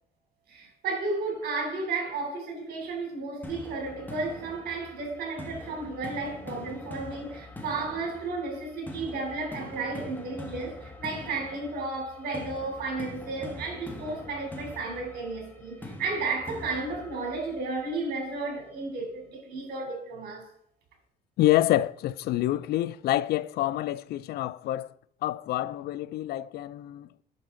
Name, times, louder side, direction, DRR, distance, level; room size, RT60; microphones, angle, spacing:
voice 1, 0.5-20.5, right 3 dB, 65° right, 3.6 m, -33 dB
sound 1, 3.4-18.4, left 1 dB, 10° left, 1.5 m, -43 dB
voice 2, 21.4-24.9 25.2-27.2, left 14 dB, 70° left, 0.4 m, -27 dB
9.4 x 6.8 x 3.8 m
cardioid pair, 110°, 17 cm